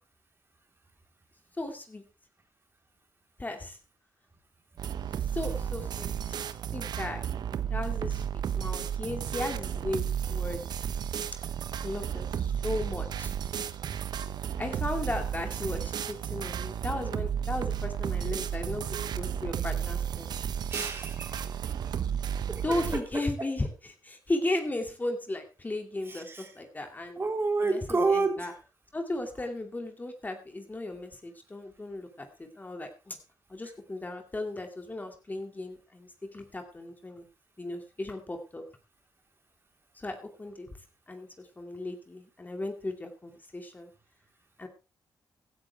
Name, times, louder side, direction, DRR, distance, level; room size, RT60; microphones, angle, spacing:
voice 1, 1.6-2.0 3.4-3.8 5.3-6.1 6.7-7.3 7.7-10.6 11.8-13.3 14.6-20.3 22.6-27.2 27.6-28.5 28.9-33.2 33.5-37.2 37.6-38.6 40.0-40.7 41.1-43.9 44.6-44.7, left 2 dB, 25° left, 5 dB, 2.4 m, -36 dB
sound 1, 4.8-23.0, right 8 dB, 75° right, 1.0 m, -33 dB
voice 2, 20.7-21.4 22.5-23.2 27.2-28.5, right 3 dB, 30° right, 4 dB, 3.8 m, -29 dB
16.0 x 12.5 x 3.4 m, 0.30 s
cardioid pair, 85°, 7 cm